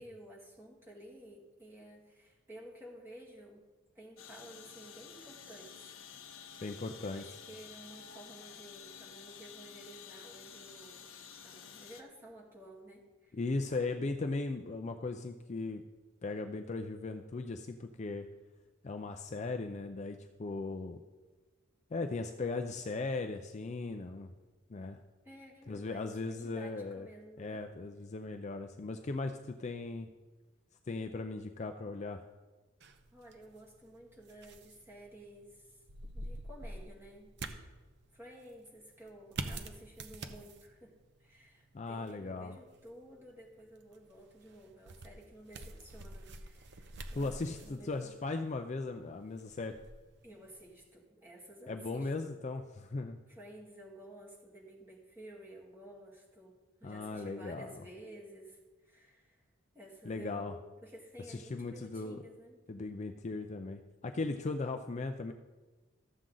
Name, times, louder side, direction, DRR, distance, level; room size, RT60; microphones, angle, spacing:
voice 1, 0.0-3.6 3.9-5.9 6.5-6.6 7.0-11.0 11.4-13.4 25.2-27.7 33.1-35.8 36.1-37.3 38.1-48.1 50.2-52.4 53.3-59.5 59.7-62.6, right 1 dB, 10° right, -4 dB, 2.1 m, -53 dB
sound 1, 4.2-12.0, left 7 dB, 65° left, 0.8 m, -51 dB
voice 2, 6.6-7.2 13.3-15.8 16.2-18.3 18.8-21.0 21.9-24.3 24.7-25.0 25.7-27.1 27.4-30.1 30.9-32.2 41.7-42.6 47.2-49.8 51.7-53.2 56.8-57.8 60.1-60.6 61.3-62.2 62.7-65.3, left 3 dB, 35° left, 6 dB, 0.4 m, -38 dB
sound 2, 32.8-50.9, right 2 dB, 55° right, 0.7 m, -48 dB
14.0 x 7.4 x 3.8 m, 1.3 s
head